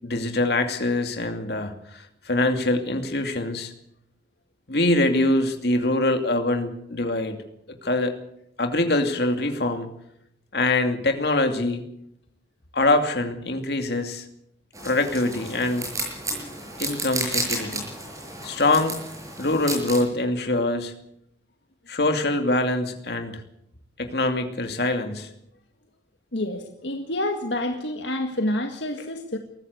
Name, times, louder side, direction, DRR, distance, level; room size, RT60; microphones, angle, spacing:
voice 1, 0.0-3.7 4.7-7.4 7.7-8.2 8.6-9.9 10.5-11.8 12.7-14.2 14.8-15.9 16.8-17.9 18.4-19.0 19.4-20.9 21.9-23.4 24.0-25.3, left 2 dB, 60° left, 6 dB, 2.6 m, -24 dB
sound 1, 14.7-20.0, right 2 dB, 20° right, 6.4 m, -32 dB
voice 2, 26.3-29.4, left 1 dB, 80° left, 4 dB, 1.9 m, -28 dB
22.5 x 14.5 x 8.2 m, 0.75 s
head